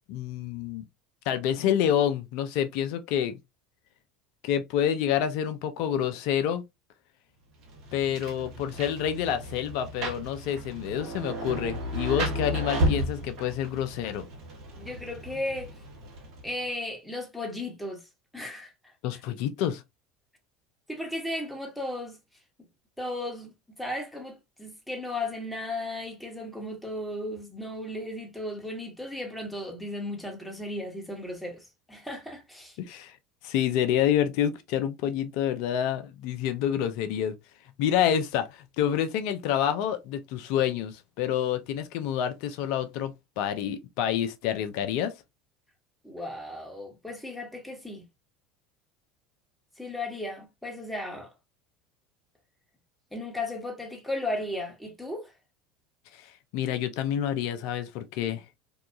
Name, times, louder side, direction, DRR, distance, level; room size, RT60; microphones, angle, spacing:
voice 1, 0.1-0.8 1.3-3.4 4.4-6.6 7.9-14.2 19.0-19.8 32.8-33.2 33.4-37.4 37.8-45.1 56.1-56.2 56.5-58.4, left 9 dB, 65° left, 0.4 m, -28 dB
Rain, 7.6-16.7, right 1 dB, 60° right, 1.0 m, -33 dB
voice 2, 14.7-15.7 16.4-18.1 18.3-18.9 20.9-22.2 23.0-32.8 46.0-48.0 49.8-51.3 53.1-55.3, left 1 dB, 5° left, 1.1 m, -35 dB
2.7 x 2.3 x 2.3 m
hypercardioid pair, 75°, 0 cm